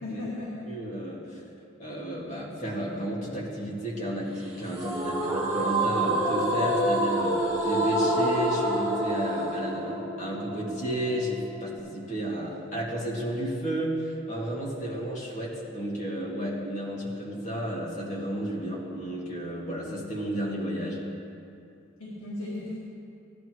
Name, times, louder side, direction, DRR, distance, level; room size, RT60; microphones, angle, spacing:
voice 1, 0.0-0.7 22.0-22.8, left 2 dB, 85° left, -7 dB, 1.9 m, -35 dB
voice 2, 0.7-1.4 1.8-21.0, right 1 dB, 35° left, -5 dB, 2.2 m, -32 dB
sound 1, 4.8-11.8, right 1 dB, 20° right, 3.3 m, -27 dB
16.5 x 11.5 x 3.1 m, 2.6 s
head